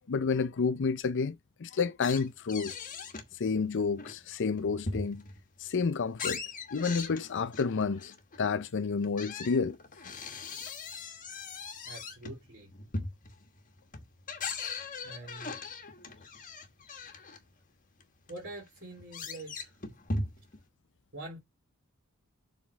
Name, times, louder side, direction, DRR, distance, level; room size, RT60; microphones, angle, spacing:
voice 1, 0.1-2.7 3.4-5.2 5.6-6.4 6.7-9.8, left 5 dB, 55° left, 0.5 m, -30 dB
sound 1, 2.0-3.3 3.7-5.4 5.8-8.4 9.0-17.4 18.0-18.1 18.3-20.6, left 3 dB, 35° left, 1.2 m, -39 dB
voice 2, 11.8-12.7 15.0-15.5 18.3-19.7 21.1-21.4, right 2 dB, 50° right, 3.1 m, -45 dB
7.2 x 3.5 x 6.2 m
head